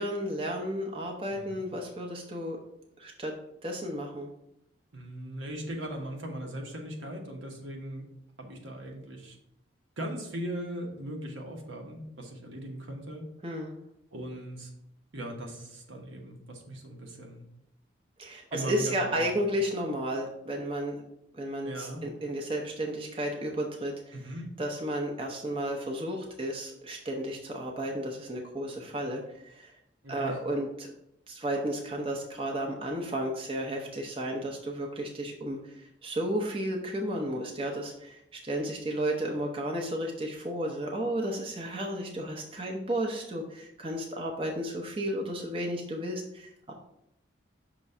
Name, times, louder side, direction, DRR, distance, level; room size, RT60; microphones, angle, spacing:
voice 1, 0.0-2.6 3.0-3.3 3.6-4.3 13.4-13.7 18.2-20.9 21.3-24.1 24.6-29.7 30.1-30.9 31.3-46.7, right 1 dB, 30° right, 0 dB, 0.8 m, -33 dB
voice 2, 1.3-1.6 4.9-8.0 8.4-9.4 10.0-13.3 14.1-14.7 15.1-17.4 18.5-19.5 21.6-22.0 24.1-24.5 30.0-30.4, right 1 dB, 80° right, 1 dB, 1.2 m, -39 dB
6.0 x 3.0 x 5.4 m, 0.78 s
head